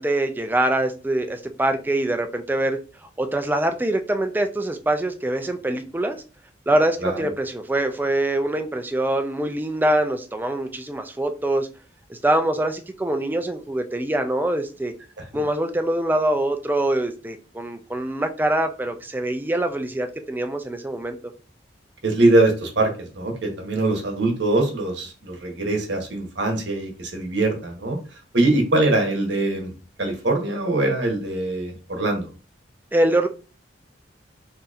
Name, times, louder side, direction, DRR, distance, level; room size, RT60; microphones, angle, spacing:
voice 1, 0.0-2.8 3.2-6.2 6.7-11.7 12.1-14.9 15.3-21.2 32.9-33.3, right 1 dB, 10° right, 0.3 m, -24 dB
voice 2, 22.0-28.0 28.3-29.7 30.0-32.3, right 2 dB, 70° right, 1.0 m, -22 dB
3.9 x 2.7 x 2.5 m
head